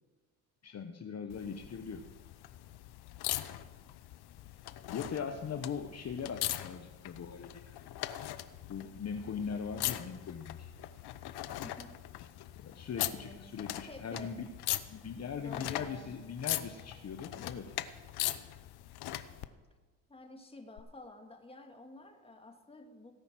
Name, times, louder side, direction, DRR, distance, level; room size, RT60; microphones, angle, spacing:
voice 1, 0.6-2.0 4.9-7.8 8.7-10.7 12.5-14.5 14.9-17.7, left 6 dB, 40° left, 6 dB, 1.0 m, -40 dB
sound 1, 1.3-19.5 20.8-20.9, left 14 dB, 65° left, 0.9 m, -40 dB
voice 2, 11.6-12.0 13.1-13.5 13.9-14.4 15.4-16.2 20.1-23.1, left 2 dB, 15° left, 4 dB, 2.0 m, -50 dB
17.5 x 5.9 x 7.5 m, 1.3 s
supercardioid pair, 70°, 41 cm